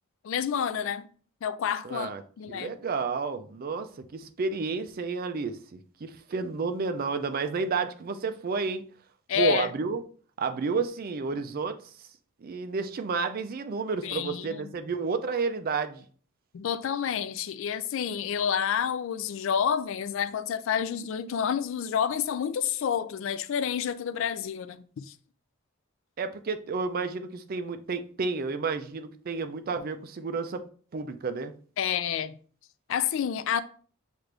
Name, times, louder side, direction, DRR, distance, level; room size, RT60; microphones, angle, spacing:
voice 1, 0.2-1.1 1.4-2.1 2.4-2.7 9.3-9.7 14.0-14.7 16.5-25.1 31.8-32.3 32.9-33.6, left 8 dB, 65° left, 0.3 m, -29 dB
voice 2, 1.8-2.2 2.5-8.8 9.3-10.0 10.4-11.8 12.4-16.0 26.2-31.5, right 4 dB, 45° right, 0.4 m, -31 dB
6.1 x 2.5 x 3.3 m
head